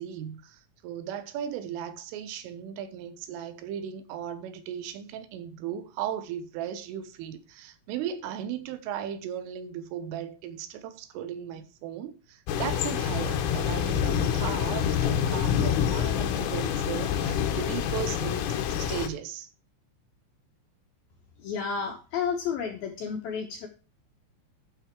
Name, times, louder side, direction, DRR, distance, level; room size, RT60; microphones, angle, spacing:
voice 1, 0.0-18.5 18.8-19.5, right 9 dB, 85° right, 3.6 m, -36 dB
sound 1, 12.5-19.1, left 9 dB, 90° left, 3.8 m, -27 dB
voice 2, 21.4-23.7, left 6 dB, 75° left, 2.3 m, -31 dB
12.0 x 6.0 x 4.5 m
omnidirectional pair, 5.7 m